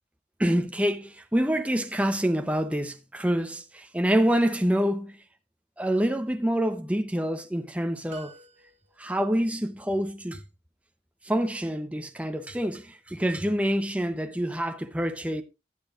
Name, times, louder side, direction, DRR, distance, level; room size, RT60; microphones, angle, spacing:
voice 1, 0.4-5.2 5.8-8.3 9.0-10.4 11.2-15.4, equal, 10° right, 0.6 m, -26 dB
sound 1, 8.1-9.2, right 2 dB, 40° right, 5.0 m, -49 dB
15.5 x 10.0 x 2.4 m
head